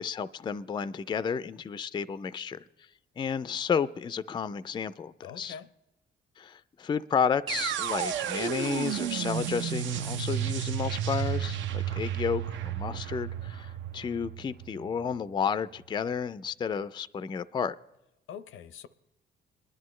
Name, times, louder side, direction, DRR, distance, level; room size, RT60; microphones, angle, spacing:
voice 1, 0.0-2.6 3.2-5.6 6.4-17.7, left 6 dB, 25° left, 0.3 m, -32 dB
voice 2, 5.2-5.7 18.3-18.9, left 8 dB, 80° left, 0.6 m, -43 dB
sound 1, 7.5-15.4, right 9 dB, 70° right, 0.6 m, -32 dB
22.0 x 11.0 x 3.1 m
cardioid pair, 90°, 20 cm